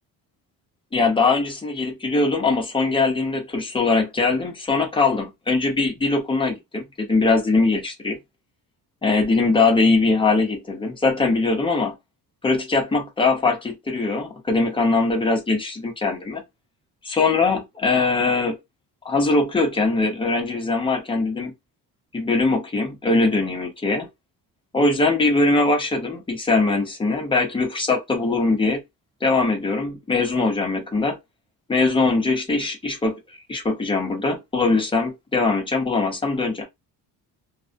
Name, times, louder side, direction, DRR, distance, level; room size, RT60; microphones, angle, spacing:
voice 1, 0.9-8.2 9.0-12.0 12.4-16.4 17.0-18.6 19.0-21.5 22.1-24.1 24.7-28.8 29.2-31.2 31.7-36.7, left 3 dB, 15° left, 0.6 m, -21 dB
2.4 x 2.1 x 2.4 m
cardioid pair, 140°, 39 cm